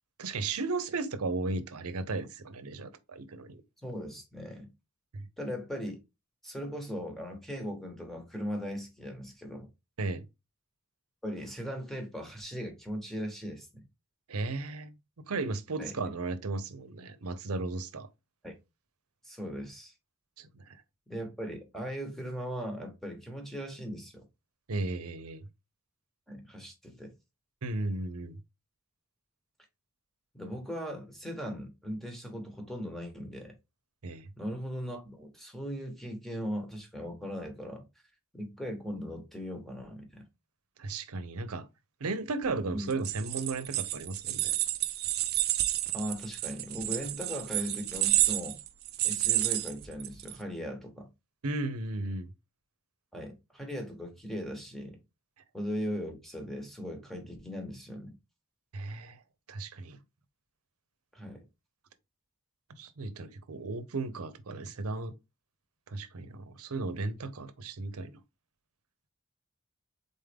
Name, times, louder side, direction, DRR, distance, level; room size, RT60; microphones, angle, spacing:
voice 1, 0.2-3.6 5.1-5.3 10.0-10.2 14.3-14.9 15.3-18.1 20.4-20.5 24.7-25.4 27.6-28.4 34.0-34.3 40.8-41.7 42.0-44.5 51.4-52.3 58.7-59.2 59.5-60.0 62.8-65.1 65.9-68.2, right 3 dB, 90° right, 0.7 m, -35 dB
voice 2, 3.8-4.7 5.4-6.0 6.4-9.7 11.2-13.8 15.8-16.0 18.4-18.5 19.2-19.9 21.1-24.2 26.3-27.1 30.3-33.5 34.4-37.8 38.3-40.2 42.7-42.9 45.9-48.6 49.0-51.1 53.1-55.0 55.5-58.2 61.1-61.4, equal, ahead, 1.1 m, -38 dB
sound 1, 42.9-50.3, right 14 dB, 45° right, 0.4 m, -30 dB
4.0 x 3.6 x 3.4 m
head